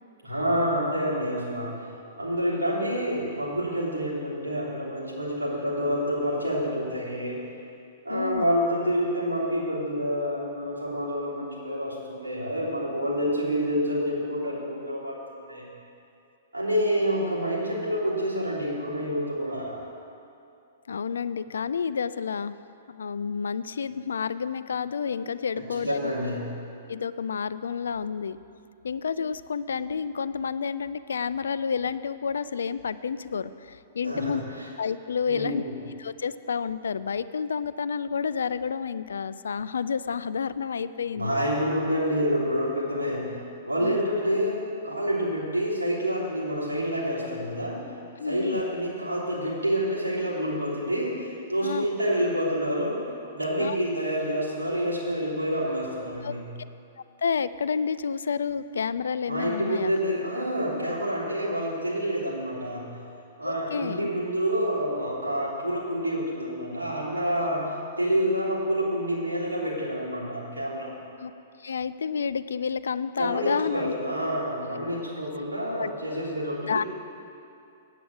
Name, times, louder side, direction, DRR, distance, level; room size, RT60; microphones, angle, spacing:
voice 1, 0.2-1.9 2.2-7.4 8.0-15.6 16.5-19.9 25.5-26.6 34.0-34.4 35.3-35.8 41.1-43.3 43.6-47.9 48.2-53.0 53.3-56.5 59.2-63.0 63.4-70.9 73.2-76.9, equal, 85° right, -6 dB, 3.4 m, -28 dB
voice 2, 8.1-8.4 20.9-22.5 22.9-26.0 26.9-28.4 28.8-34.4 34.8-35.6 36.0-41.4 43.8-44.0 48.2-48.6 51.6-51.9 53.6-53.8 56.2-56.3 57.2-59.9 63.4-64.1 71.2-71.3 71.6-73.9 75.8-75.9 76.7-76.8, left 6 dB, 75° left, 15 dB, 0.3 m, -30 dB
8.5 x 8.4 x 7.9 m, 2.6 s
figure-of-eight pair, 110°, 0 cm